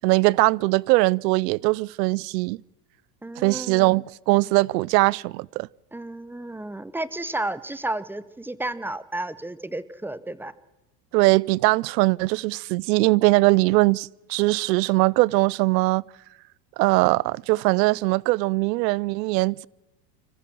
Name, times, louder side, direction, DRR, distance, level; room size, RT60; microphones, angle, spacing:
voice 1, 0.0-2.6 3.4-5.7 11.1-16.0 16.8-19.7, right 22 dB, 80° right, 0.6 m, -21 dB
voice 2, 3.2-4.0 5.9-10.5, right 2 dB, 5° right, 0.7 m, -32 dB
25.5 x 14.5 x 7.6 m
supercardioid pair, 115°, 50 cm